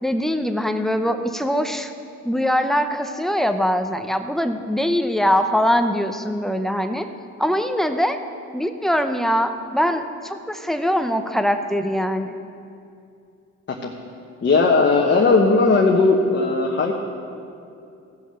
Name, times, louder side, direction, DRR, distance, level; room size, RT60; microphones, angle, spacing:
voice 1, 0.0-1.9 2.2-7.1 7.4-8.2 8.5-12.4, equal, ahead, 7 dB, 0.7 m, -22 dB
voice 2, 14.4-16.9, left 3 dB, 40° left, -1 dB, 1.2 m, -17 dB
15.5 x 6.2 x 6.8 m, 2.6 s
cardioid pair, 90°, 30 cm